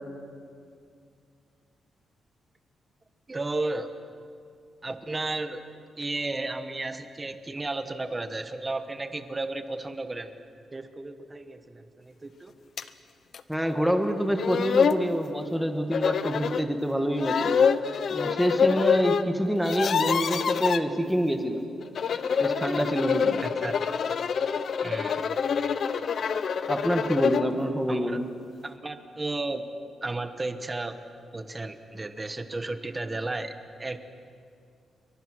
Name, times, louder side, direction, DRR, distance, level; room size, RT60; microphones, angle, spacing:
voice 1, 3.3-3.9 4.8-5.6 6.0-10.3 10.7-12.5 23.4-23.8 24.8-25.2 27.9-28.2 28.6-29.6 30.0-31.0 31.3-33.5 33.8-34.0, right 2 dB, 15° right, 9 dB, 1.2 m, -33 dB
sound 1, 12.8-12.9 13.3-13.4 14.1-14.2 14.4-15.0 15.9-16.6 17.2-19.2 19.5-20.8 21.8-27.5, left 6 dB, 50° left, 0.8 m, -26 dB
voice 2, 13.5-17.5 18.1-21.7 22.4-23.4 26.7-28.3, equal, ahead, 5 dB, 1.5 m, -26 dB
29.0 x 23.5 x 6.3 m, 2.3 s
wide cardioid pair, 175°, 0 cm